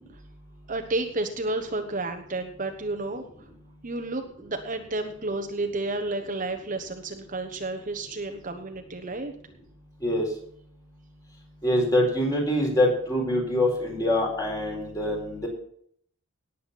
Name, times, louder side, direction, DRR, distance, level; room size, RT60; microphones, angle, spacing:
voice 1, 0.7-3.2 3.8-9.3, right 2 dB, 40° right, 5 dB, 1.1 m, -31 dB
voice 2, 11.6-15.5, left 1 dB, 15° left, 0 dB, 4.5 m, -24 dB
18.5 x 8.0 x 4.2 m, 0.63 s
head